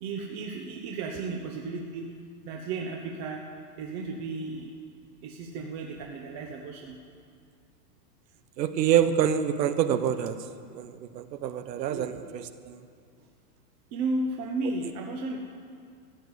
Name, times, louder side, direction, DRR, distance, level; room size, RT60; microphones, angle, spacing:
voice 1, 0.0-2.1 2.4-3.4 3.8-4.7 5.2-7.0 11.9-12.0 13.2-13.3 13.9-15.4, right 3 dB, 35° right, 1 dB, 1.1 m, -34 dB
voice 2, 8.6-10.4 10.8-10.9 11.4-12.1, right 9 dB, 80° right, 11 dB, 1.2 m, -25 dB
15.0 x 9.6 x 8.2 m, 2.2 s
supercardioid pair, 150°, 50 cm